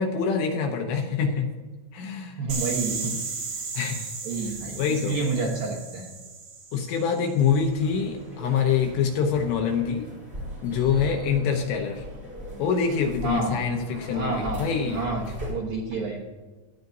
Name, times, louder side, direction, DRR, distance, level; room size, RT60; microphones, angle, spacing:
voice 1, 0.0-1.5 1.9-2.4 3.7-4.1 4.5-5.2 6.7-10.1 10.6-12.0 12.6-15.0, left 6 dB, 75° left, 2 dB, 2.9 m, -25 dB
voice 2, 2.4-3.2 4.2-6.1 13.2-13.6 14.1-16.2, right 3 dB, 70° right, -2 dB, 2.2 m, -29 dB
sound 1, 2.5-7.3, right 4 dB, 50° right, 2.2 m, -35 dB
sound 2, 7.5-15.5, left 1 dB, 15° right, 3.5 m, -39 dB
17.0 x 13.0 x 2.7 m, 1.3 s
omnidirectional pair, 5.8 m